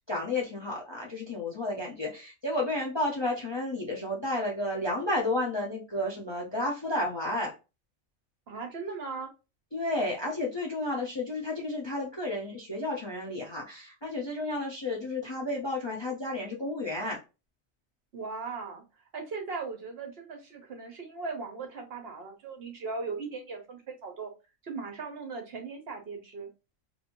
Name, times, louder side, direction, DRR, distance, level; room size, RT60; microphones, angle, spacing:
voice 1, 0.1-7.5 9.7-17.2, left 2 dB, 30° left, -1 dB, 0.5 m, -32 dB
voice 2, 8.5-9.3 18.1-18.8 19.1-24.3 24.6-26.5, right 4 dB, 55° right, 4 dB, 0.9 m, -38 dB
3.0 x 2.7 x 2.5 m, 0.28 s
omnidirectional pair, 1.3 m